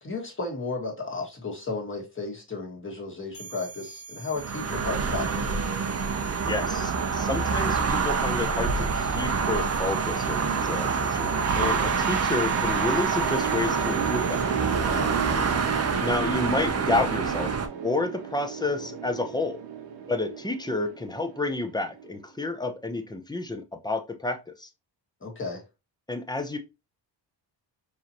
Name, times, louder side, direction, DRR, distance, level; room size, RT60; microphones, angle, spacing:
voice 1, 0.0-5.6 11.6-11.9 14.9-15.4 25.2-25.6, left 3 dB, 25° left, 1.7 m, -34 dB
sound 1, 3.3-14.8, right 4 dB, 65° left, 1.3 m, -44 dB
sound 2, 4.4-17.7, right 5 dB, 35° right, 0.7 m, -26 dB
voice 2, 6.4-14.4 16.0-17.5 17.8-19.6 20.1-24.7 26.1-26.6, left 2 dB, 10° left, 0.7 m, -30 dB
sound 3, 11.4-22.2, right 7 dB, 90° right, 0.8 m, -34 dB
4.8 x 2.8 x 2.9 m
cardioid pair, 105°, 44 cm